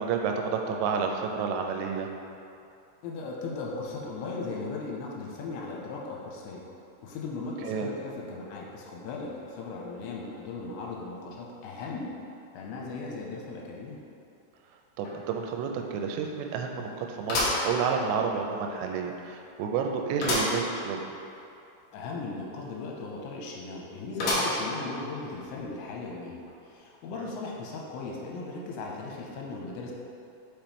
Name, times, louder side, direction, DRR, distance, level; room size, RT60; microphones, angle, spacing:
voice 1, 0.0-2.1 7.6-7.9 15.0-21.0 27.2-27.4, right 6 dB, 85° right, 3 dB, 2.7 m, -30 dB
voice 2, 3.0-6.6 7.0-12.1 12.5-14.0 21.9-26.4 26.7-29.9, left 3 dB, 90° left, -2 dB, 3.0 m, -37 dB
sound 1, 15.0-15.1 15.6-15.7 17.3-18.4 18.9-19.0 20.2-20.6 21.0-21.1 21.3-21.4 24.2-24.8 25.4-25.5 26.5-26.6, left 1 dB, 70° left, 2.0 m, -28 dB
6.9 x 5.0 x 3.1 m, 2.7 s
omnidirectional pair, 5.2 m